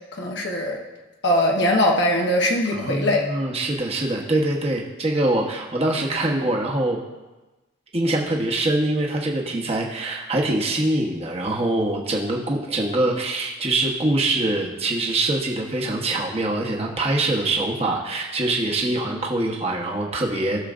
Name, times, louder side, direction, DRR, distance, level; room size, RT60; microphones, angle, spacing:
voice 1, 0.2-0.8 1.2-3.3, left 1 dB, 55° left, 0 dB, 1.1 m, -21 dB
voice 2, 2.7-7.0 7.9-20.6, right 2 dB, 30° right, -1 dB, 1.1 m, -24 dB
17.5 x 6.6 x 2.5 m, 1.1 s
head